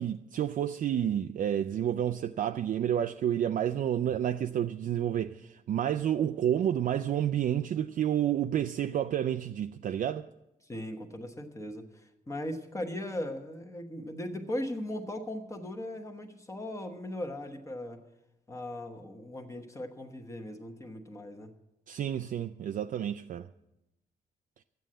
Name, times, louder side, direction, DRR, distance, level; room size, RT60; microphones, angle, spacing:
voice 1, 0.0-10.3 21.9-23.5, right 10 dB, 55° right, 0.4 m, -30 dB
voice 2, 10.6-18.0 18.5-21.5, left 1 dB, 15° left, 1.1 m, -38 dB
13.0 x 9.1 x 7.6 m
wide cardioid pair, 175°, 17 cm